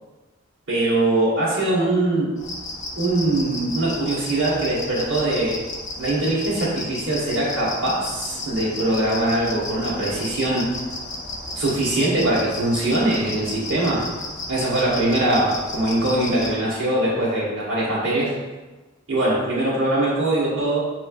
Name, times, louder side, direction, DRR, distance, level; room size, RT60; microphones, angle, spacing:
voice 1, 0.7-2.3 3.0-5.6 6.0-10.7 11.5-14.0 14.5-18.3 19.1-20.8, right 1 dB, 85° right, -8 dB, 1.3 m, -22 dB
sound 1, 2.4-16.6, left 2 dB, 40° left, 0.6 m, -33 dB
6.1 x 3.1 x 2.4 m, 1.2 s
head